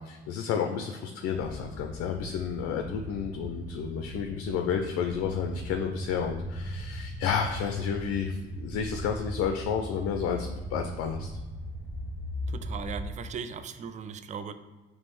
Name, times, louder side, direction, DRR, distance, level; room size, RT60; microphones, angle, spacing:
voice 1, 0.0-11.3, left 7 dB, 50° left, 4 dB, 0.5 m, -31 dB
sound 1, 1.2-13.0, equal, 90° right, 0.9 m, -38 dB
voice 2, 12.5-14.5, right 6 dB, 25° right, 11 dB, 0.3 m, -38 dB
4.2 x 3.0 x 3.1 m, 1.2 s
figure-of-eight pair, 45°, 29 cm